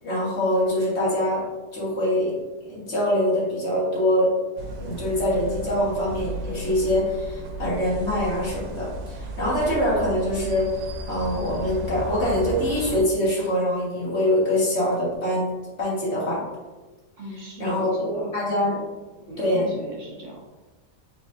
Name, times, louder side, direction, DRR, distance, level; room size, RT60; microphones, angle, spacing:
voice 1, 0.0-1.4 1.7-2.3 2.6-4.3 4.8-10.7 11.1-16.4 17.6-18.7 19.4-19.7, left 1 dB, 40° left, -6 dB, 1.6 m, -24 dB
sound 1, 4.6-13.0, right 1 dB, 90° right, 1.3 m, -34 dB
voice 2, 17.2-18.3 18.7-18.8 19.3-20.4, right 1 dB, 50° right, -2 dB, 0.7 m, -37 dB
4.8 x 3.6 x 2.6 m, 1.2 s
omnidirectional pair, 1.8 m